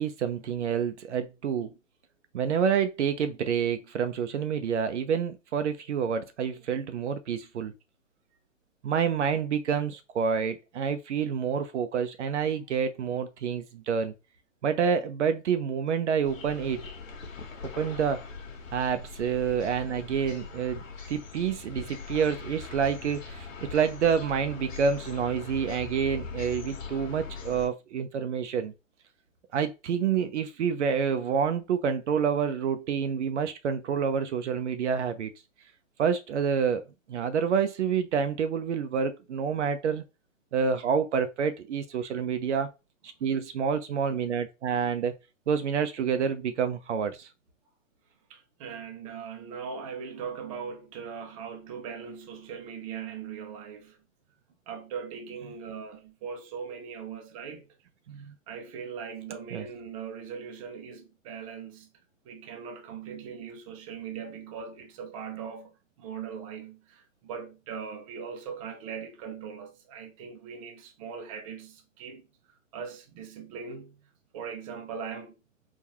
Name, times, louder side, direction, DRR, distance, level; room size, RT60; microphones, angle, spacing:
voice 1, 0.0-1.7 2.3-7.7 8.8-14.1 14.6-16.8 17.7-18.2 18.7-20.8 21.1-28.7 29.5-35.3 36.0-36.8 37.1-40.0 40.5-42.7 43.2-45.2 45.5-47.3 58.1-58.3 59.5-59.7, right 7 dB, 60° right, 0.7 m, -28 dB
sound 1, 16.2-27.7, left 4 dB, 75° left, 1.2 m, -41 dB
voice 2, 48.3-54.0 54.7-57.7 58.2-61.9 62.2-75.4, right 6 dB, 25° right, 0.7 m, -40 dB
3.9 x 2.5 x 2.9 m
hypercardioid pair, 145°, 40 cm